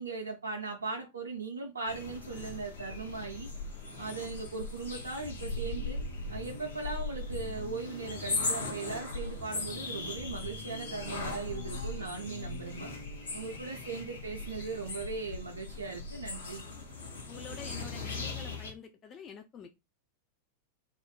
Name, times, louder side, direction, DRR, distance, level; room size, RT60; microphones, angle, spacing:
voice 1, 0.0-3.5 4.0-6.0 6.3-12.9 13.3-16.6, right 4 dB, 70° right, 0.4 m, -39 dB
sound 1, 1.9-18.7, left 3 dB, 70° left, 0.8 m, -39 dB
sound 2, 5.2-13.6, left 1 dB, 90° left, 1.1 m, -47 dB
voice 2, 17.3-19.7, left 7 dB, 30° left, 0.3 m, -47 dB
2.5 x 2.0 x 3.4 m
figure-of-eight pair, 90°, 0 cm